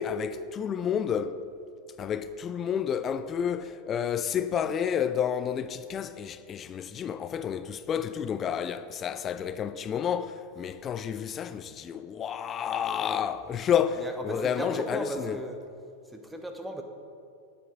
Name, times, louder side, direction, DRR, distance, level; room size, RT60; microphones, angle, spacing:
voice 1, 0.0-1.4 2.0-15.4, left 8 dB, 25° left, 0.4 m, -30 dB
voice 2, 14.0-15.6 16.1-16.8, right 1 dB, 5° right, 1.1 m, -36 dB
10.5 x 10.0 x 3.9 m
figure-of-eight pair, 90°, 0 cm